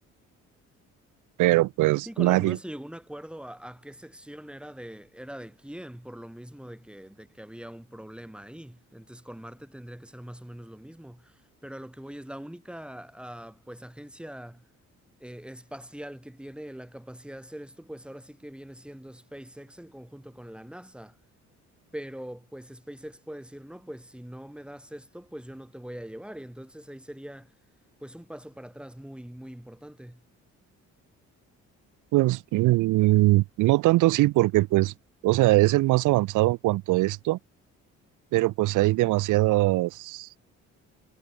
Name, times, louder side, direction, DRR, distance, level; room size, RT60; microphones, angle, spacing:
voice 1, 1.4-2.6 32.1-34.9 35.2-37.4 38.3-40.3, right 19 dB, 90° right, 0.7 m, -22 dB
voice 2, 2.1-14.7 15.2-21.2 21.9-27.5 28.0-30.2, equal, 5° right, 7.5 m, -42 dB
cardioid pair, 90°, 30 cm